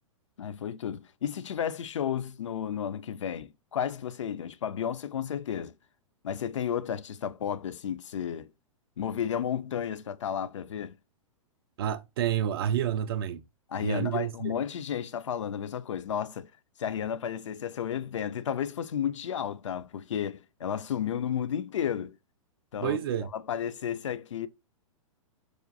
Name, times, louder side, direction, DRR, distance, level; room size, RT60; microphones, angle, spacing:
voice 1, 0.4-5.7 6.2-8.5 9.0-11.0 13.7-16.5 16.8-22.2 22.7-23.0 23.3-24.5, left 9 dB, 60° left, 0.4 m, -32 dB
voice 2, 11.8-13.4 13.8-14.5 22.8-23.3, right 10 dB, 45° right, 0.4 m, -29 dB
4.8 x 2.4 x 2.5 m
figure-of-eight pair, 105°, 18 cm